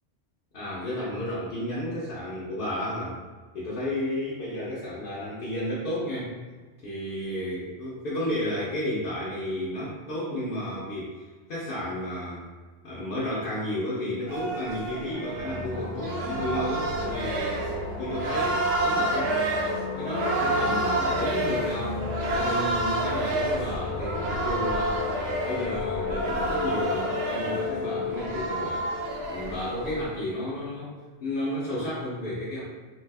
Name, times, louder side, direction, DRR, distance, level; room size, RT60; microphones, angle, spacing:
voice 1, 0.5-3.2 3.5-6.3 6.8-12.5 12.8-17.6 18.0-19.4 19.9-22.0 22.3-28.9 29.3-30.9 31.2-32.6, left 1 dB, 50° left, -10 dB, 0.8 m, -32 dB
sound 1, 14.3-30.1, right 2 dB, 60° right, 0.7 m, -30 dB
sound 2, 15.1-30.6, left 4 dB, 90° left, 1.0 m, -34 dB
2.7 x 2.4 x 3.4 m, 1.4 s
omnidirectional pair, 1.3 m